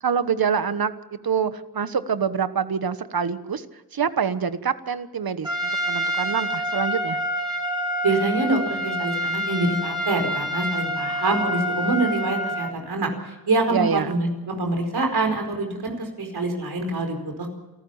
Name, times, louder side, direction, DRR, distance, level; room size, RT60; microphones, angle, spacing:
voice 1, 0.0-3.7 3.9-7.2 13.7-14.1, right 6 dB, 70° right, 12 dB, 1.3 m, -26 dB
Trumpet, 5.4-12.8, equal, 10° right, 4.6 m, -27 dB
voice 2, 8.0-17.5, right 2 dB, 85° right, 4 dB, 4.8 m, -25 dB
27.5 x 14.0 x 7.2 m, 1.1 s
wide cardioid pair, 75°, 37 cm